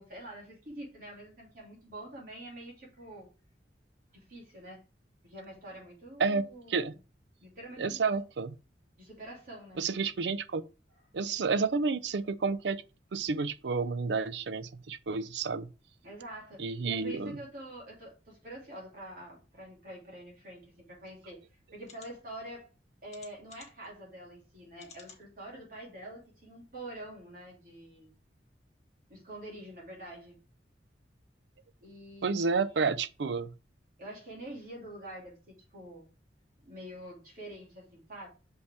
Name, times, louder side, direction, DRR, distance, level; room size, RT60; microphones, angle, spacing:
voice 1, 0.0-3.3 4.1-4.8 5.2-6.9 7.4-8.0 9.0-9.8 16.0-21.4 21.7-22.7 23.0-28.1 29.1-30.4 31.8-32.4 34.0-36.1 36.6-38.3, right 1 dB, 50° right, 2.9 m, -46 dB
voice 2, 6.2-6.9 7.8-8.5 9.8-10.6 11.1-12.8 13.1-15.7 16.6-17.4 32.2-33.5, right 4 dB, 75° right, 0.5 m, -30 dB
sound 1, 21.1-21.2 21.8-22.1 23.1-23.9 24.8-25.2 25.8-25.9 26.2-26.3, left 6 dB, 40° left, 1.7 m, -54 dB
6.5 x 5.2 x 3.4 m
head